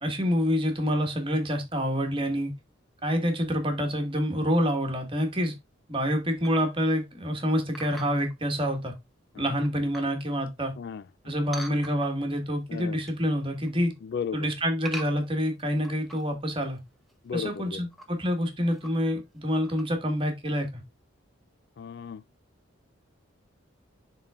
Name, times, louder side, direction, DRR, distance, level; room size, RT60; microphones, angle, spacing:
voice 1, 0.0-2.5 3.0-5.5 5.9-8.9 9.4-10.7 11.2-13.9 14.3-16.8 17.3-20.8, equal, 25° right, 1.6 m, -27 dB
sound 1, 6.4-6.7 7.7-8.3 9.0-9.1 9.5-10.2 11.5-12.3 12.7-13.3 13.6-14.0 14.8-16.4 16.7-16.8 17.1-17.2 17.8-18.1 18.7-19.2 19.6-19.9, right 1 dB, ahead, 0.9 m, -42 dB
voice 2, 14.0-14.5 17.2-17.8 21.8-22.2, left 6 dB, 55° left, 0.3 m, -34 dB
11.0 x 3.9 x 2.3 m
head